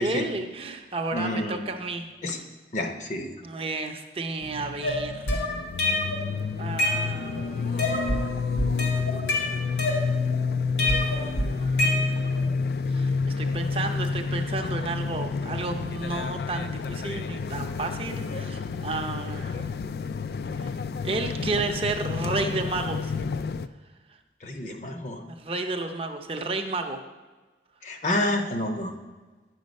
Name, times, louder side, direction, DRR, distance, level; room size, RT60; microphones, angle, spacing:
voice 1, 0.0-2.1 3.4-5.5 6.6-8.2 11.0-12.6 12.9-19.7 20.5-20.7 21.0-23.1 25.3-27.0, right 3 dB, 30° right, 4 dB, 0.6 m, -32 dB
voice 2, 1.1-1.6 2.2-2.4 2.7-3.3 24.4-25.2 27.8-28.9, left 1 dB, 45° left, 5 dB, 0.8 m, -29 dB
sound 1, 4.4-23.7, left 4 dB, 60° left, 0.3 m, -29 dB
sound 2, 4.8-6.2 6.6-7.4 7.8-8.3 8.6-10.4 10.8-12.4, left 1 dB, 80° left, 2.2 m, -27 dB
8.9 x 6.4 x 5.2 m, 1.3 s
head